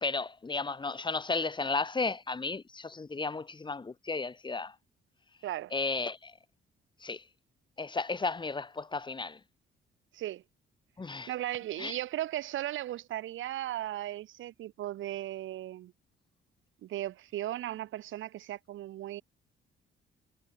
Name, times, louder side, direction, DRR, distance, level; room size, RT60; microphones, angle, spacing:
voice 1, 0.0-4.7 5.7-6.3 7.0-7.2 7.8-9.4 11.0-11.3 11.8-12.0, left 4 dB, 25° left, 1.2 m, -34 dB
voice 2, 5.4-5.7 10.1-10.4 11.3-15.9 16.8-19.2, right 13 dB, 80° right, 1.5 m, -36 dB
cardioid pair, 90°, 20 cm